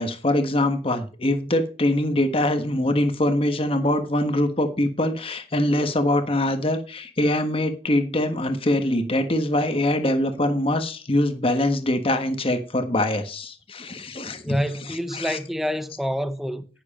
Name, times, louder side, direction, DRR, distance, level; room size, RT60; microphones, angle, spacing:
voice 1, 0.0-14.6 15.1-15.4, left 1 dB, 30° left, 1.3 m, -23 dB
voice 2, 14.4-16.7, equal, ahead, 0.8 m, -28 dB
10.5 x 9.7 x 4.2 m
head